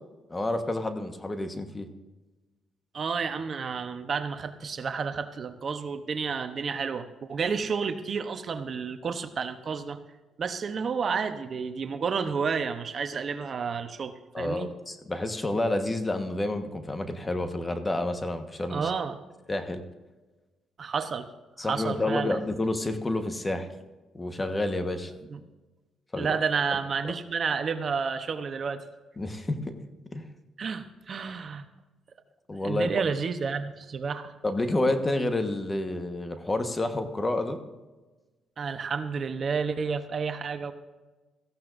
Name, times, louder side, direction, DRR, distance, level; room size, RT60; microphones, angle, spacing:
voice 1, 0.3-1.9 14.3-18.9 19.5-19.8 21.6-23.7 24.1-25.1 26.1-26.4 27.1-27.2 29.2-29.8 30.1-30.3 32.5-32.9 34.4-37.6, left 2 dB, 20° left, 7 dB, 1.3 m, -29 dB
voice 2, 2.9-10.0 10.4-14.7 18.7-19.2 20.8-21.3 21.6-22.4 25.3-25.4 26.2-28.8 30.6-31.7 32.6-34.3 38.6-40.7, right 5 dB, 50° right, 9 dB, 0.9 m, -30 dB
17.0 x 15.0 x 2.6 m, 1.2 s
cardioid pair, 90°, 0 cm